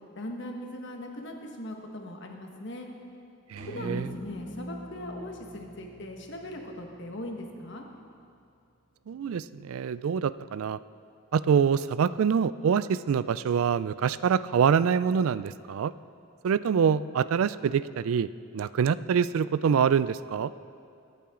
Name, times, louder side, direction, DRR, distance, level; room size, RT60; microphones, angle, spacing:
voice 1, 0.2-2.9 3.7-7.9, left 1 dB, 55° left, 1 dB, 1.4 m, -39 dB
voice 2, 3.5-4.1 9.1-10.8 11.3-15.9 16.4-20.5, right 7 dB, 70° right, 17 dB, 0.3 m, -25 dB
sound 1, 3.6-8.0, equal, 45° right, 3.8 m, -43 dB
23.0 x 8.7 x 3.8 m, 2.5 s
head